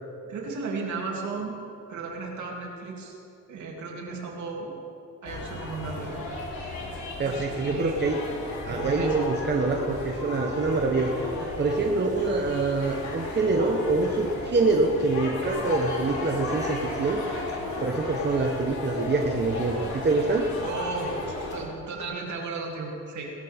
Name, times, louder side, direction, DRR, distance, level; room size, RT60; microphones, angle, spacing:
voice 1, 0.3-1.6 1.9-3.1 3.5-4.7 5.2-6.3 7.2-7.9 8.7-9.1 20.6-23.3, right 4 dB, 70° right, -1 dB, 3.1 m, -35 dB
sound 1, 5.3-21.6, left 2 dB, 70° left, 3.6 m, -34 dB
voice 2, 7.2-8.2 8.7-11.1 11.6-17.2 17.8-20.4, right 3 dB, 35° right, 1 dB, 1.3 m, -25 dB
20.5 x 13.5 x 3.7 m, 2.7 s
cardioid pair, 90°, 30 cm